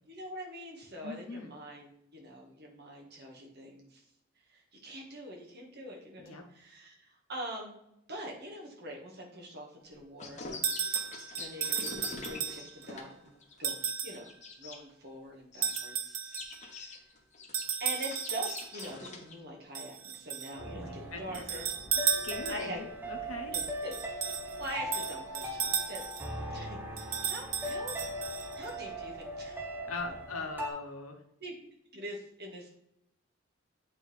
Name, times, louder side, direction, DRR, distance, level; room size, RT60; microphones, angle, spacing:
voice 1, 0.1-4.0 4.5-7.8 8.1-10.5 11.3-13.3 13.6-14.3 14.6-16.2 16.7-17.0 17.8-21.7 22.5-22.8 23.5-23.9 24.6-26.0 26.5-28.0 28.5-29.7 31.4-31.6 31.9-32.7, right 1 dB, 50° right, -1 dB, 1.6 m, -44 dB
voice 2, 1.0-1.5 6.2-6.5 20.6-21.4 22.1-23.6 29.9-31.2, left 3 dB, 75° left, 3 dB, 1.0 m, -41 dB
sound 1, 10.2-14.8 15.5-15.8 16.2-19.3, left 3 dB, 35° left, 1.0 m, -44 dB
sound 2, 10.6-12.9 13.6-14.2 15.6-16.6 17.5-18.9 19.7-20.6 21.3-22.8 23.5-26.3 27.0-28.7, right 8 dB, 85° right, 0.7 m, -34 dB
sound 3, 20.5-30.7, equal, 10° right, 0.7 m, -40 dB
8.5 x 3.8 x 3.3 m, 0.78 s
head